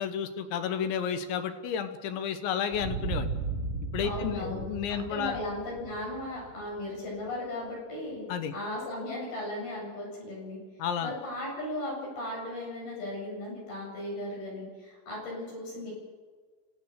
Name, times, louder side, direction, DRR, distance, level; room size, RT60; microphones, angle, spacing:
voice 1, 0.0-3.3 3.9-5.4 8.3-8.5 10.8-11.1, left 8 dB, 75° left, 9 dB, 3.4 m, -32 dB
sound 1, 2.7-7.3, right 4 dB, 45° right, 1.8 m, -36 dB
voice 2, 4.0-10.6 11.0-15.9, left 1 dB, 55° left, -3 dB, 9.7 m, -36 dB
28.0 x 16.5 x 6.6 m, 1.5 s
omnidirectional pair, 5.4 m